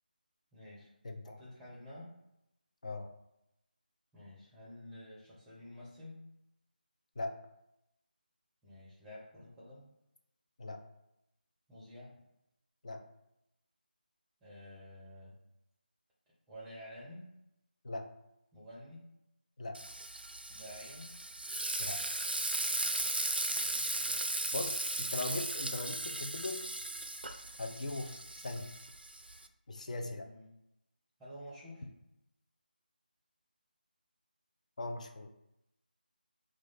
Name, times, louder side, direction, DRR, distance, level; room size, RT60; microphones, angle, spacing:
voice 1, 0.5-0.9 1.2-2.1 4.1-6.3 8.6-9.9 11.7-12.3 14.4-15.3 16.5-17.3 18.5-19.0 20.5-21.1 23.5-24.3 30.0-30.5 31.2-31.8, left 1 dB, 5° right, -8 dB, 0.8 m, -50 dB
Frying (food), 19.7-29.5, right 2 dB, 80° right, 0.4 m, -37 dB
voice 2, 24.5-26.7 27.6-28.7 29.7-30.3 34.8-35.3, left 2 dB, 45° left, 5 dB, 0.5 m, -39 dB
3.1 x 2.4 x 3.9 m, 0.87 s
figure-of-eight pair, 160°, 5 cm